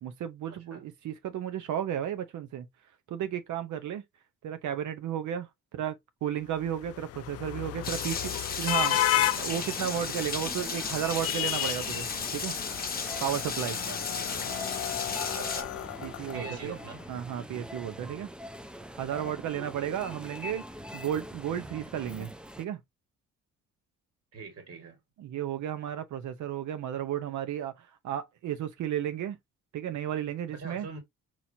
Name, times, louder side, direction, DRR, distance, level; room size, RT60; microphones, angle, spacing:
voice 1, 0.0-2.7 3.1-4.0 4.4-5.5 5.7-9.0 9.4-12.5 13.2-13.8 16.0-16.8 17.1-18.3 19.0-20.6 20.9-22.3 22.6-22.8 25.2-29.4 29.7-30.9, right 10 dB, 75° right, 0.8 m, -33 dB
sound 1, 6.6-16.9, left 13 dB, 55° left, 0.4 m, -33 dB
Rain, 7.8-15.6, left 5 dB, 30° left, 0.9 m, -34 dB
sound 2, 9.1-22.6, equal, 5° right, 0.4 m, -44 dB
voice 2, 15.4-15.7 16.3-17.1 19.5-19.7 24.3-25.0 30.5-31.0, right 4 dB, 50° right, 1.8 m, -43 dB
4.3 x 2.9 x 2.7 m
cardioid pair, 90°, 30 cm